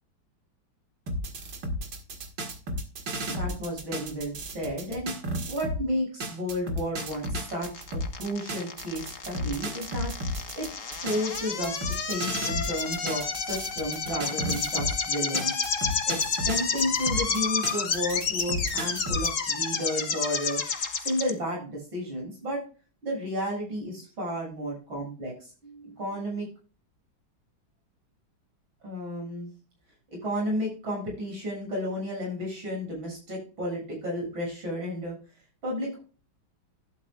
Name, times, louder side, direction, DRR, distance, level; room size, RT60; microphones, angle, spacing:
sound 1, 1.1-5.8 6.2-15.0 15.3-19.3, equal, 65° right, 2.6 m, -34 dB
voice 1, 3.3-5.1 5.5-10.7 11.0-15.6 16.0-20.6 21.0-22.6 23.0-25.3 25.6-26.5 28.8-29.5 30.1-35.1 35.6-36.0, equal, 85° right, -2 dB, 8.0 m, -32 dB
sound 2, 7.0-21.3, left 5 dB, 45° left, 1.6 m, -30 dB
12.0 x 11.5 x 2.4 m, 0.35 s
omnidirectional pair, 2.1 m